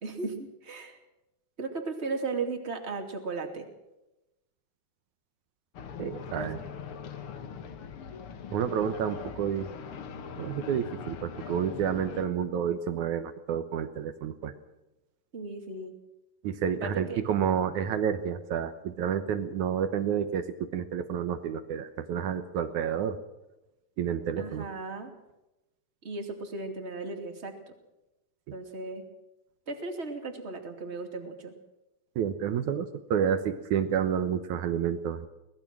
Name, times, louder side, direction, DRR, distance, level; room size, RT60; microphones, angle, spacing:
voice 1, 0.0-1.0 1.6-3.7 6.3-6.5 15.3-15.9 16.8-17.2 24.4-25.1 26.0-27.5 28.5-29.0 29.7-31.5, right 3 dB, 20° right, 4 dB, 2.2 m, -36 dB
sound 1, 5.7-12.2, left 6 dB, 75° left, 1.2 m, -41 dB
voice 2, 6.0-6.6 8.5-9.7 10.4-14.5 16.4-23.2 24.0-24.7 32.2-35.3, right 8 dB, 70° right, 10 dB, 1.9 m, -30 dB
23.5 x 19.5 x 6.2 m, 0.96 s
omnidirectional pair, 4.7 m